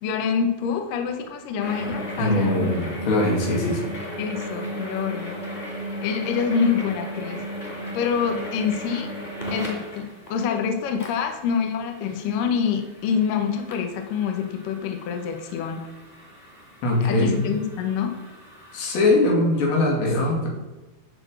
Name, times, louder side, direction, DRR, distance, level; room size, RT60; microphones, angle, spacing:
voice 1, 0.0-2.7 4.2-5.4 6.0-7.4 7.9-9.1 9.5-15.9 17.0-18.1, left 7 dB, 70° left, 5 dB, 2.4 m, -26 dB
sound 1, 1.6-19.1, equal, 15° left, 1.7 m, -36 dB
voice 2, 2.2-3.8 16.8-17.5 18.7-20.5, left 2 dB, 90° left, -1 dB, 4.5 m, -21 dB
11.0 x 4.4 x 7.9 m, 1.1 s
omnidirectional pair, 4.7 m